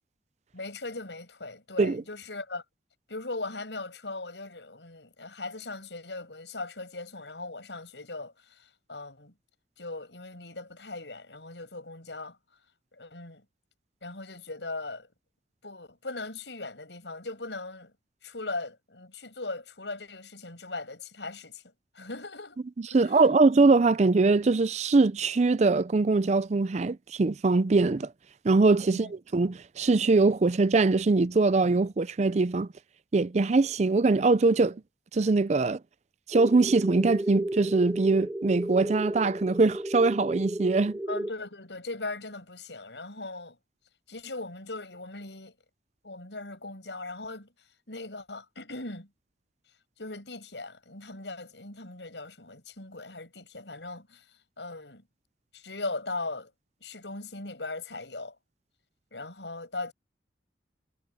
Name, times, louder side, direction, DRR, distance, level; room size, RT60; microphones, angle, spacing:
voice 1, 0.5-2.6 3.1-9.3 9.8-12.4 12.9-13.4 14.0-15.1 15.6-17.9 18.2-21.6 21.9-22.6 22.9-23.3 28.9-29.1 41.1-43.6 44.1-45.5 46.0-47.5 47.9-49.1 50.0-54.3 54.6-55.0 55.5-56.5 56.8-58.3 59.1-59.9, left 2 dB, 85° left, 6.7 m, -39 dB
voice 2, 22.9-28.1 28.4-32.7 33.1-34.8 35.1-35.8 36.3-41.0, right 3 dB, 40° right, 0.4 m, -22 dB
sound 1, 36.3-41.3, right 1 dB, 10° right, 2.9 m, -33 dB
head